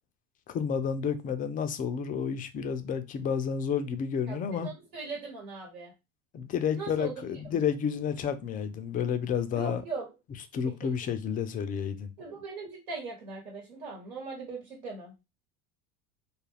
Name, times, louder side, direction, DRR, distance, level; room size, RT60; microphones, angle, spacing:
voice 1, 0.5-4.7 6.3-9.8 10.5-12.1, left 7 dB, 20° left, 0.3 m, -30 dB
voice 2, 4.3-5.9 6.7-7.6 9.5-10.1 10.8-10.9 12.2-15.1, right 4 dB, 85° right, 1.3 m, -39 dB
2.4 x 2.3 x 3.2 m
hypercardioid pair, 80°, 43 cm